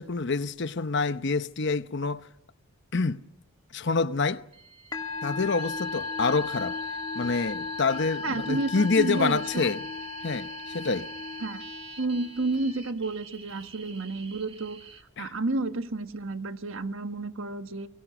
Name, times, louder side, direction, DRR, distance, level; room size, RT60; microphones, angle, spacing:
voice 1, 0.0-2.3 2.9-3.2 3.7-4.4 5.2-6.8 7.1-9.8 10.2-11.1 15.2-15.3, left 4 dB, 55° left, 0.8 m, -27 dB
sound 1, 4.5-15.0, right 4 dB, 25° right, 1.8 m, -47 dB
Musical instrument, 4.9-12.5, left 4 dB, 20° left, 2.6 m, -36 dB
voice 2, 8.2-9.7 11.4-11.6 12.0-14.8 15.2-17.9, right 2 dB, 65° right, 1.3 m, -31 dB
29.0 x 23.5 x 6.1 m
head